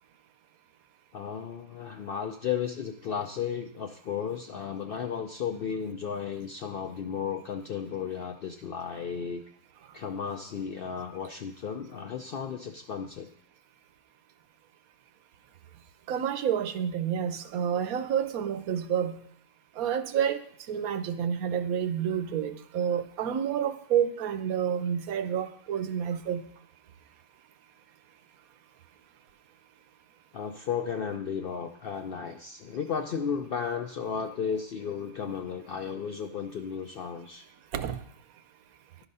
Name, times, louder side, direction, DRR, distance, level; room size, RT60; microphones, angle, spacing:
voice 1, 1.1-9.4 9.9-13.3 30.3-37.4, left 7 dB, 70° left, 5 dB, 0.5 m, -34 dB
voice 2, 16.1-19.2 19.8-20.4 20.7-26.4 37.7-38.0, right 8 dB, 85° right, 10 dB, 1.1 m, -29 dB
11.0 x 4.0 x 5.4 m, 0.63 s
omnidirectional pair, 1.5 m